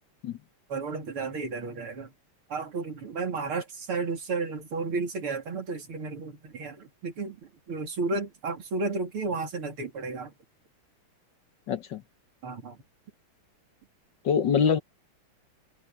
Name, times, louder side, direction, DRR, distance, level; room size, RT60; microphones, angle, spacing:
voice 1, 0.7-2.1 2.5-10.3 12.4-12.8, right 3 dB, 75° right, 3.9 m, -33 dB
voice 2, 11.7-12.0 14.2-14.8, left 7 dB, 60° left, 1.6 m, -24 dB
omnidirectional pair, 2.4 m